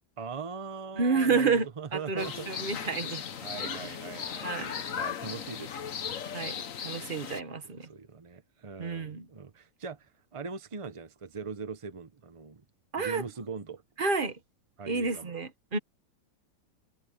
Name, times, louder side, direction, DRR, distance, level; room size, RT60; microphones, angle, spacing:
voice 1, 0.2-2.5 3.4-5.8 7.6-12.6 13.0-13.8 14.8-15.3, right 5 dB, 55° right, 0.3 m, -41 dB
voice 2, 1.0-1.7 1.9-3.2 3.6-3.8 4.4-4.7 6.3-7.9 8.8-9.3 12.9-13.2 14.0-14.4 14.9-15.8, right 4 dB, 35° right, 1.1 m, -30 dB
sound 1, 2.2-7.4, left 7 dB, 50° left, 1.3 m, -37 dB
omnidirectional pair, 2.0 m